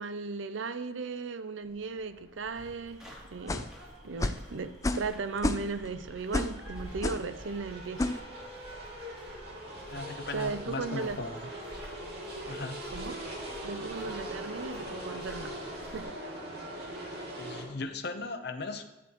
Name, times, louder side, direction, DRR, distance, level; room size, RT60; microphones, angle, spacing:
voice 1, 0.0-3.7 4.0-8.1 10.3-11.2 12.9-13.2 13.6-15.6 15.9-16.4, right 4 dB, 80° right, 0.6 m, -36 dB
sound 1, 1.6-17.6, right 1 dB, 55° right, 2.4 m, -43 dB
sound 2, 2.5-16.0, equal, 5° right, 2.8 m, -50 dB
sound 3, 3.5-3.7 4.2-4.5 4.8-5.1 5.4-5.9 6.3-6.6 7.0-7.3 8.0-8.2, left 2 dB, 15° left, 0.4 m, -30 dB
voice 2, 9.9-11.4 12.5-12.9 17.4-18.8, left 3 dB, 55° left, 0.8 m, -37 dB
12.0 x 9.4 x 3.0 m
head